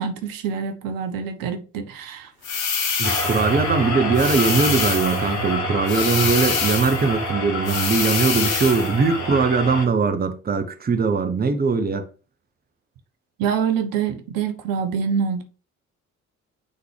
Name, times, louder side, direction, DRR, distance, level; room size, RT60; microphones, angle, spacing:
voice 1, 0.0-2.3 13.4-15.4, right 7 dB, 55° right, 1.0 m, -25 dB
sound 1, 2.4-3.5 4.1-5.3 5.9-7.0 7.6-8.9, left 6 dB, 80° left, 1.0 m, -25 dB
sound 2, 3.0-9.8, equal, 45° left, 1.9 m, -27 dB
voice 2, 3.0-12.0, right 4 dB, 25° right, 0.9 m, -21 dB
8.6 x 3.9 x 3.3 m
figure-of-eight pair, 45°, 40 cm